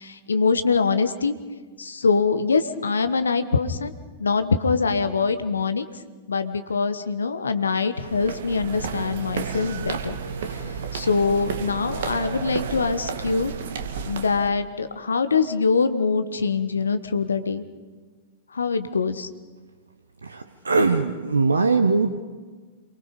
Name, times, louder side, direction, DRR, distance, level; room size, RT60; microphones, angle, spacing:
voice 1, 0.0-1.3 1.8-3.9 4.2-5.9 6.3-10.2 10.5-10.6 10.9-13.5 14.0-17.6 18.5-19.3, left 4 dB, 75° left, 10 dB, 1.3 m, -23 dB
sound 1, 8.0-14.5, right 6 dB, 60° right, 2.4 m, -32 dB
voice 2, 20.2-22.2, right 4 dB, 75° right, 9 dB, 1.1 m, -21 dB
28.0 x 23.5 x 5.3 m, 1.4 s
figure-of-eight pair, 100°, 0 cm